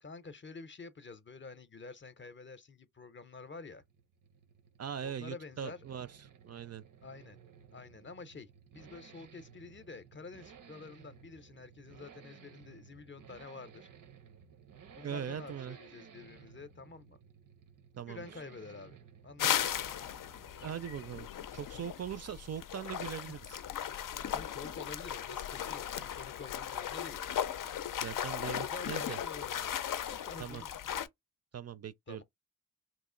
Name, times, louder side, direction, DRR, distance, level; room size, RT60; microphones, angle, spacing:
voice 1, 0.0-3.8 5.0-5.8 7.0-7.4 7.7-13.9 14.9-17.2 18.1-19.0 19.2-19.8 24.3-27.2 28.6-29.8 30.1-30.7 32.1-32.2, left 4 dB, 40° left, 0.6 m, -48 dB
Accelerating revving vroom, 3.2-21.4 21.7-21.8, right 7 dB, 90° right, 0.7 m, -57 dB
voice 2, 4.8-6.8 15.0-15.8 18.0-18.3 20.6-23.6 28.0-29.2 30.4-30.6 31.5-32.2, right 9 dB, 55° right, 0.4 m, -41 dB
sound 1, 19.4-31.1, left 10 dB, 90° left, 0.5 m, -37 dB
3.0 x 2.4 x 3.7 m
cardioid pair, 70°, 31 cm